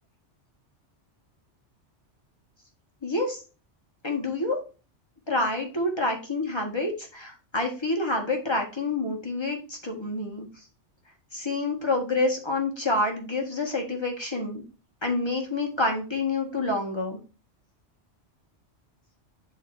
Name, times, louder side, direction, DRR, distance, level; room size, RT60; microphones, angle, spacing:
voice 1, 3.0-3.4 4.0-4.6 5.3-10.5 11.3-14.6 15.0-17.2, left 2 dB, 20° left, 0 dB, 1.9 m, -28 dB
10.0 x 4.4 x 2.7 m, 0.33 s
omnidirectional pair, 1.2 m